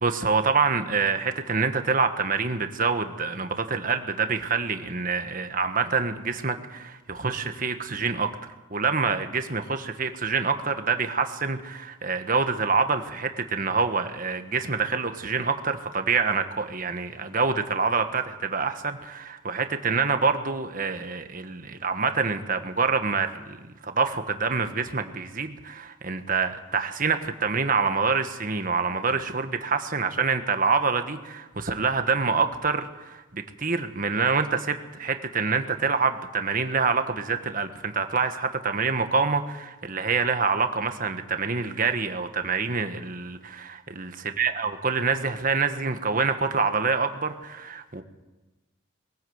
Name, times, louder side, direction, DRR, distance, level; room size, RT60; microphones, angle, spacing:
voice 1, 0.0-8.3 8.7-48.0, right 4 dB, 40° right, 8 dB, 1.4 m, -26 dB
22.0 x 16.0 x 8.0 m, 1.1 s
head